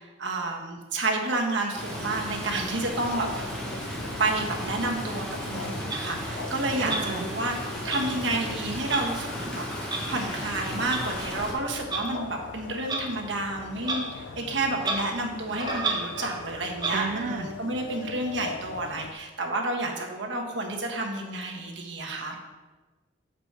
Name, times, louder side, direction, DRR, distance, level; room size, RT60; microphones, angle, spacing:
voice 1, 0.0-3.5 4.2-9.6 10.1-22.4, right 2 dB, 75° right, 1 dB, 1.2 m, -30 dB
Stream, 1.7-11.5, equal, 5° left, 1.3 m, -35 dB
sound 1, 1.9-19.1, left 5 dB, 75° left, 0.4 m, -41 dB
Clock, 5.9-6.0 6.9-7.0 7.9-8.0 8.9-9.0 9.9-10.0 10.9-11.0 11.9-12.0 12.9-13.0 13.8-14.0 14.3-14.4 14.8-15.0 15.5-16.4 16.8-16.9, right 3 dB, 25° right, 1.1 m, -30 dB
voice 2, 6.8-7.2 16.9-17.5, right 5 dB, 40° right, 4 dB, 0.3 m, -32 dB
7.2 x 5.0 x 4.7 m, 1.3 s
head